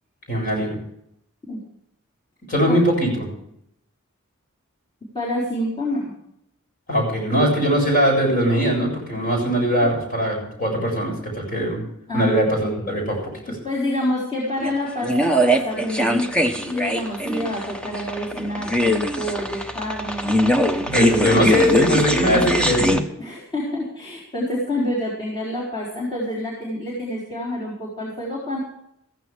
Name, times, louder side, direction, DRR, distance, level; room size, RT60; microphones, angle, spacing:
voice 1, 0.3-0.8 2.5-3.3 6.9-11.8 12.1-13.3 20.8-23.0, equal, 40° left, 1 dB, 7.1 m, -21 dB
voice 2, 5.1-6.1 9.8-9.9 12.1-12.9 13.6-16.3 16.7-20.4 21.1-21.5 23.2-28.6, left 1 dB, 20° left, -7 dB, 4.1 m, -27 dB
sound 1, 14.6-23.0, equal, 5° left, 1.0 m, -22 dB
15.5 x 15.5 x 3.5 m, 0.73 s
head